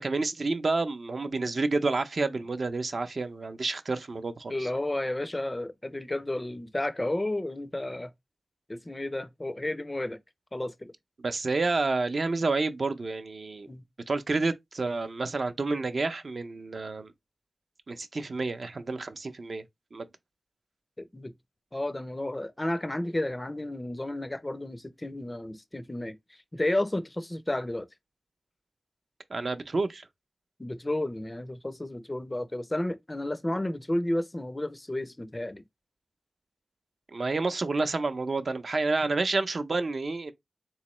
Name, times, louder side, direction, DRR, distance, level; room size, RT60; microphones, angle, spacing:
voice 1, 0.0-4.7 11.2-13.7 14.1-17.1 17.9-19.6 19.9-20.1 29.3-30.1 37.1-40.3, right 3 dB, 55° right, 0.5 m, -29 dB
voice 2, 4.5-8.1 8.7-10.2 10.5-10.9 13.7-13.8 21.0-21.3 21.7-26.2 26.5-27.9 30.6-35.6, left 1 dB, 20° left, 0.4 m, -32 dB
3.7 x 3.0 x 3.0 m
wide cardioid pair, 95°, 0 cm